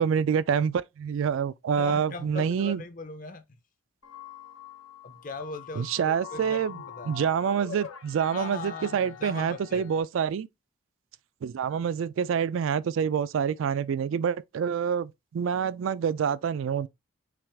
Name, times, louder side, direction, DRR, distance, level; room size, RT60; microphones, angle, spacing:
voice 1, 0.0-2.8 5.8-6.8 7.1-10.5 11.4-16.9, right 7 dB, 70° right, 0.3 m, -27 dB
voice 2, 1.8-3.4 5.0-7.1 8.3-9.9, left 3 dB, 40° left, 0.6 m, -39 dB
sound 1, 4.0-10.0, left 8 dB, 80° left, 0.7 m, -44 dB
5.8 x 2.4 x 3.3 m
head